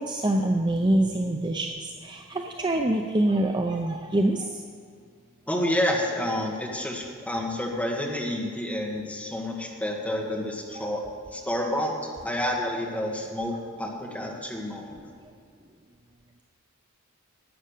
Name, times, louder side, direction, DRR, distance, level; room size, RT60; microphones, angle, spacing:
voice 1, 0.0-4.6, right 1 dB, 20° right, 3 dB, 0.5 m, -25 dB
voice 2, 5.5-11.1 11.3-11.9 12.2-15.0, left 1 dB, 5° left, -1 dB, 1.6 m, -29 dB
12.0 x 8.8 x 6.6 m, 2.2 s
head